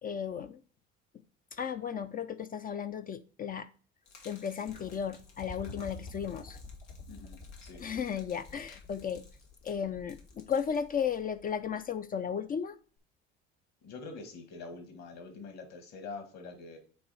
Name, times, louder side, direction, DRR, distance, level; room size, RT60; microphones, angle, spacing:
voice 1, 0.0-0.6 1.5-3.7 4.2-6.6 7.8-9.2 9.6-12.8, left 7 dB, 25° left, 0.4 m, -35 dB
Gurgling / Liquid, 4.0-11.7, left 4 dB, 90° left, 1.2 m, -59 dB
sound 1, 4.7-11.8 13.0-13.1, left 3 dB, 65° left, 1.8 m, -48 dB
voice 2, 7.1-7.8 13.8-16.8, left 4 dB, 50° left, 1.9 m, -45 dB
7.9 x 3.0 x 4.2 m
hypercardioid pair, 70°, 34 cm